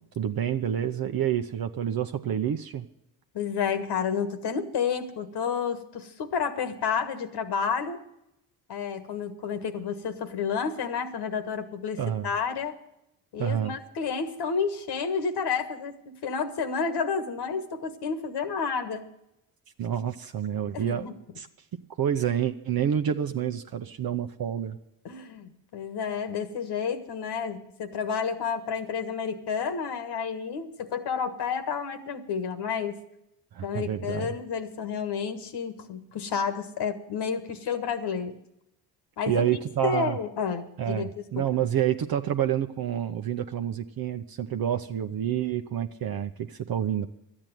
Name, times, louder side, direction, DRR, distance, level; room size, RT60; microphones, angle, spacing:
voice 1, 0.2-2.9 12.0-12.3 13.4-13.7 19.8-21.1 21.4-21.5 22.0-24.8 33.5-34.4 39.3-40.2 40.8-47.1, right 9 dB, 55° right, 7 dB, 0.9 m, -28 dB
voice 2, 3.3-8.0 8.7-12.7 13.3-19.1 20.7-21.1 25.0-33.0 33.6-38.4 39.2-41.1, left 6 dB, 65° left, 10 dB, 1.6 m, -30 dB
12.0 x 8.7 x 9.3 m, 0.83 s
supercardioid pair, 60°, 43 cm